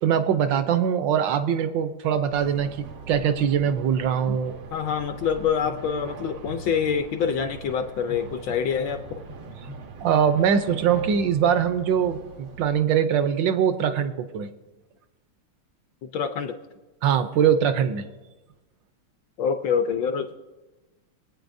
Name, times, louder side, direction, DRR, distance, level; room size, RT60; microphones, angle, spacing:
voice 1, 0.0-2.7 3.1-4.6 10.0-14.5 17.0-18.0, right 8 dB, 70° right, 10 dB, 1.2 m, -22 dB
sound 1, 2.3-12.7, right 3 dB, 85° right, 2.0 m, -41 dB
voice 2, 4.7-9.2 16.1-16.6 19.4-20.3, left 7 dB, 70° left, 7 dB, 1.2 m, -26 dB
23.0 x 8.7 x 2.6 m, 1.1 s
omnidirectional pair, 2.4 m